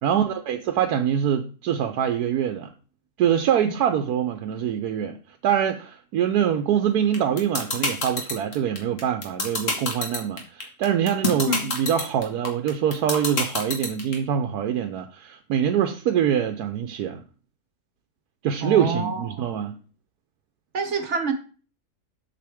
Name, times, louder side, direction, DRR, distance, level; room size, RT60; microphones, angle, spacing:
voice 1, 0.0-2.7 3.2-5.2 5.4-17.2 18.4-19.8, right 9 dB, 75° right, 1.1 m, -24 dB
sound 1, 7.1-14.1, left 3 dB, 50° left, 2.0 m, -25 dB
voice 2, 18.6-19.5 20.7-21.3, right 3 dB, 50° right, 1.1 m, -27 dB
7.6 x 6.8 x 3.5 m
omnidirectional pair, 1.7 m